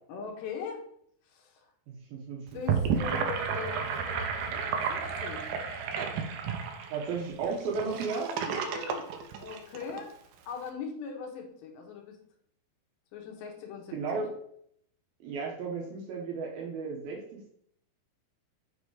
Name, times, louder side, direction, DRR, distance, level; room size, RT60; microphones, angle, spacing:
voice 1, 0.1-0.9 1.2-1.7 2.5-5.5 8.4-9.1 9.4-10.2 10.5-12.2 13.1-14.0, left 5 dB, 75° left, 2 dB, 3.4 m, -40 dB
voice 2, 1.9-2.4 6.9-8.3 13.9-14.3 15.2-17.5, right 4 dB, 70° right, -1 dB, 2.6 m, -34 dB
Gurgling / Sink (filling or washing), 2.5-10.0, right 6 dB, 90° right, 2.0 m, -32 dB
7.1 x 4.9 x 4.9 m, 0.67 s
omnidirectional pair, 5.1 m